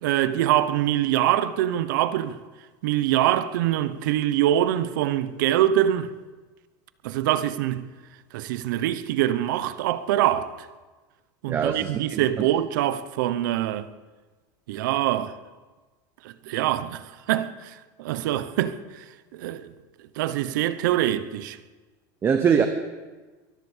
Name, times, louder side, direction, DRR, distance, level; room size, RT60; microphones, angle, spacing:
voice 1, 0.0-2.4 2.8-6.1 7.0-7.8 8.3-10.5 11.4-13.9 14.7-15.4 16.2-19.0 19.3-19.7 20.2-21.6, right 12 dB, 75° right, 0.9 m, -24 dB
voice 2, 11.5-12.5 22.2-22.7, right 7 dB, 20° right, 0.9 m, -23 dB
22.5 x 8.1 x 7.3 m
supercardioid pair, 150°, 10 cm